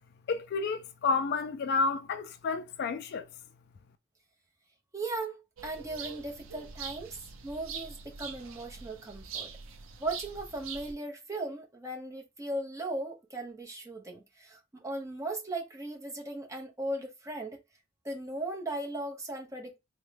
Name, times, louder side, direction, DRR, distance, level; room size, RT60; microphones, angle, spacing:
voice 1, 0.3-3.3, left 4 dB, 55° left, 0.3 m, -30 dB
voice 2, 4.9-7.2 7.4-9.5 10.0-17.6 18.0-19.8, right 2 dB, 15° right, 0.8 m, -37 dB
sound 1, 5.6-10.9, right 6 dB, 90° right, 0.6 m, -43 dB
3.5 x 2.2 x 3.3 m
head